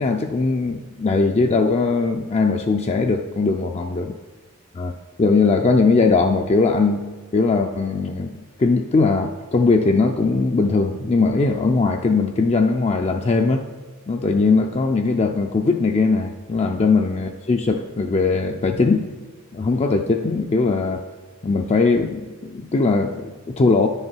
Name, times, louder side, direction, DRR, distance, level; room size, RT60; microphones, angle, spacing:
voice 1, 0.0-4.1 4.7-4.9 5.2-7.1 7.3-13.6 14.1-19.1 19.5-21.0 21.4-23.9, left 3 dB, 30° left, 4 dB, 0.4 m, -20 dB
9.8 x 6.6 x 4.5 m, 1.3 s
head